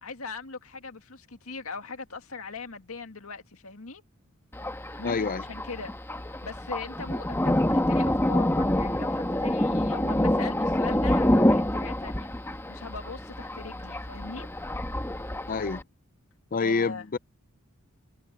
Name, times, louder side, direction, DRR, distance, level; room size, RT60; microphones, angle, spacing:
voice 1, 0.0-4.0 5.0-5.9 6.3-12.3 12.7-14.5 16.6-17.1, left 4 dB, 70° left, 2.2 m, -40 dB
Thunder, 4.5-15.8, left 1 dB, 10° left, 1.5 m, -27 dB
voice 2, 5.0-5.4 15.5-15.8 16.5-17.2, left 4 dB, 40° left, 0.5 m, -27 dB
head